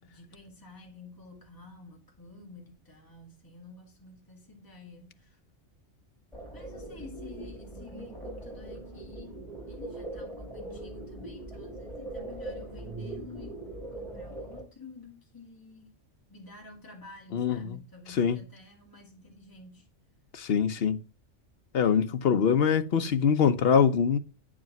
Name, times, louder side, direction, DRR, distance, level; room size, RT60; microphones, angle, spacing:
voice 1, 0.0-5.4 6.5-13.6 13.9-15.9 16.3-19.9, left 3 dB, 15° left, 2.2 m, -50 dB
sound 1, 6.3-14.6, right 2 dB, ahead, 5.4 m, -41 dB
voice 2, 17.3-17.8 18.1-18.4 20.3-21.0 21.7-24.2, left 7 dB, 60° left, 0.9 m, -24 dB
9.3 x 5.0 x 5.9 m
omnidirectional pair, 1.2 m